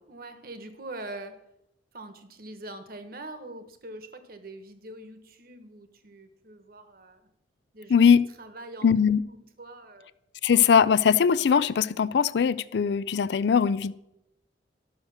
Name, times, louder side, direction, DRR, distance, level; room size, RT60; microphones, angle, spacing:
voice 1, 0.1-1.4 1.9-7.3 7.7-8.0 8.4-10.1, right 2 dB, 55° right, 9 dB, 1.2 m, -43 dB
voice 2, 7.9-8.2 8.8-9.2 10.4-13.9, left 7 dB, 70° left, 18 dB, 0.4 m, -21 dB
12.0 x 6.5 x 6.2 m, 0.85 s
head